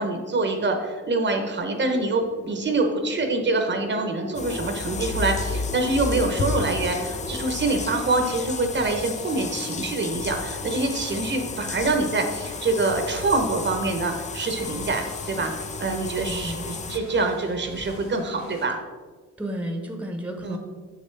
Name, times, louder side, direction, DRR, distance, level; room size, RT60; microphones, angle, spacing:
voice 1, 0.0-18.8 20.4-20.6, right 3 dB, 40° right, 5 dB, 0.9 m, -25 dB
sound 1, 1.6-7.5 8.0-8.1, left 1 dB, 45° left, 1.7 m, -39 dB
sound 2, 4.3-17.0, left 5 dB, 25° left, 0.4 m, -33 dB
sound 3, 4.6-18.7, left 1 dB, 80° left, 1.6 m, -44 dB
voice 2, 16.3-16.7 19.4-20.6, right 1 dB, 5° right, 4 dB, 0.9 m, -32 dB
6.8 x 6.6 x 3.3 m, 1.4 s
cardioid pair, 90°, 30 cm